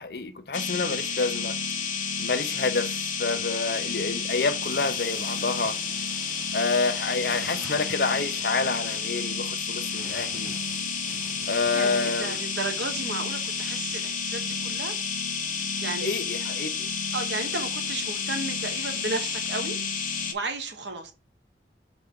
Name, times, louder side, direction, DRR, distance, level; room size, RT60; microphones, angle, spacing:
voice 1, 0.0-1.6 2.2-5.8 6.5-10.6 11.5-12.4 16.0-16.9, left 4 dB, 60° left, 0.7 m, -28 dB
sound 1, 0.5-20.3, left 5 dB, 45° left, 1.0 m, -31 dB
sound 2, 4.6-13.0, equal, ahead, 0.9 m, -49 dB
voice 2, 11.7-15.0 15.6-16.1 17.1-19.8 20.3-21.1, right 3 dB, 85° right, 1.4 m, -33 dB
5.7 x 5.0 x 3.8 m
head